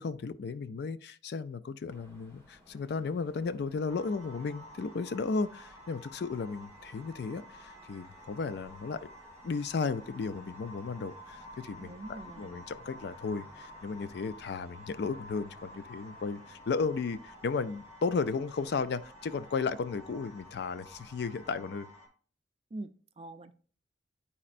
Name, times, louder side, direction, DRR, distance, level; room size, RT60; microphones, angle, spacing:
voice 1, 0.0-9.1 9.4-21.9, left 4 dB, 60° left, 0.4 m, -34 dB
sound 1, 1.9-21.6, equal, 15° left, 1.2 m, -59 dB
sound 2, 3.9-22.1, equal, 30° left, 2.4 m, -51 dB
voice 2, 11.8-12.5 22.7-23.5, right 2 dB, 35° right, 0.5 m, -44 dB
9.9 x 4.2 x 2.5 m
head